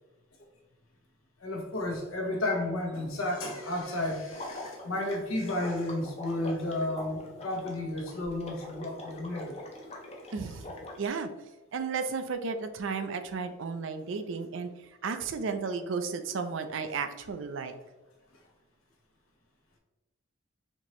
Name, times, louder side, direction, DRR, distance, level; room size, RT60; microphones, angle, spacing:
voice 1, 1.4-9.6 18.3-18.4, left 1 dB, 80° left, 1 dB, 0.9 m, -32 dB
Water / Liquid, 4.3-11.1, left 1 dB, 30° left, 0.6 m, -43 dB
voice 2, 10.3-10.6 11.0-11.3 11.7-14.7 15.0-17.7, right 5 dB, 65° right, 8 dB, 0.4 m, -33 dB
4.2 x 2.9 x 3.0 m, 1.1 s
head